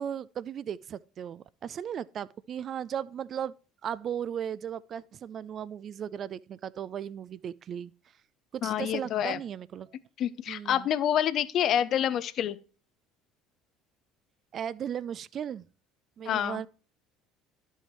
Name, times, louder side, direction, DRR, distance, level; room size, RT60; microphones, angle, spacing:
voice 1, 0.0-3.5 3.8-7.9 8.5-9.9 10.5-10.9 14.5-15.7 16.2-16.7, right 9 dB, 45° right, 0.3 m, -36 dB
voice 2, 8.6-9.4 10.2-12.6 16.3-16.6, left 10 dB, 50° left, 0.5 m, -27 dB
11.5 x 5.5 x 3.0 m
hypercardioid pair, 65°, 0 cm